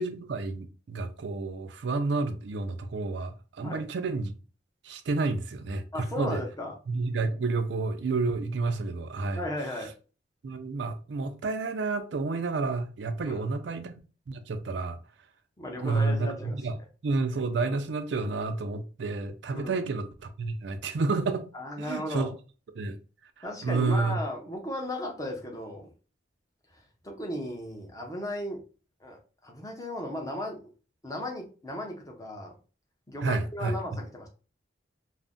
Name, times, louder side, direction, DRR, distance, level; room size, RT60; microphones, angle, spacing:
voice 1, 0.0-4.3 4.8-6.4 6.9-9.4 10.4-14.0 14.3-15.0 15.8-16.8 17.0-21.5 21.8-22.3 22.8-23.0 23.4-24.2 33.2-33.7, right 3 dB, 70° right, 0.4 m, -30 dB
voice 2, 5.9-6.7 9.3-9.9 13.3-13.5 15.6-16.6 19.5-19.8 21.5-22.3 23.4-25.9 26.7-28.6 29.0-30.7 31.0-32.5 33.1-34.3, left 1 dB, 20° left, 0.6 m, -36 dB
2.5 x 2.0 x 3.5 m
head